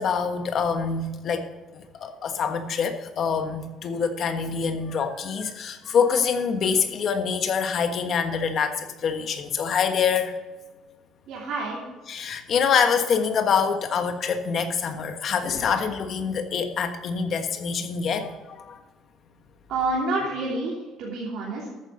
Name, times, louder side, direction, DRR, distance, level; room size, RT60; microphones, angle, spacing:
voice 1, 0.0-1.5 2.0-10.3 12.1-18.8, left 6 dB, 40° left, 7 dB, 1.4 m, -25 dB
voice 2, 11.3-11.8 19.7-21.7, right 2 dB, 55° right, -5 dB, 3.0 m, -28 dB
13.5 x 9.5 x 3.9 m, 1.3 s
cardioid pair, 170°, 0 cm